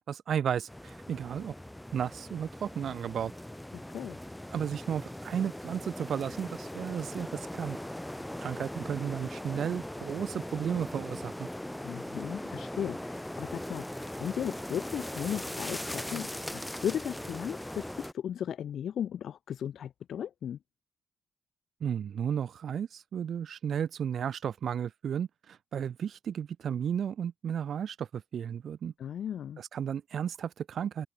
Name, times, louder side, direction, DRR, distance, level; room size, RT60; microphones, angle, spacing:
voice 1, 0.1-1.5 1.9-3.3 4.5-7.8 8.4-11.5 21.8-28.9 29.6-31.1, right 8 dB, 55° right, 2.5 m, -33 dB
sound 1, 0.7-18.1, left 1 dB, 5° left, 1.1 m, -40 dB
voice 2, 3.7-4.2 11.8-20.6 29.0-29.6, left 9 dB, 60° left, 2.7 m, -36 dB
wide cardioid pair, 165°, 0 cm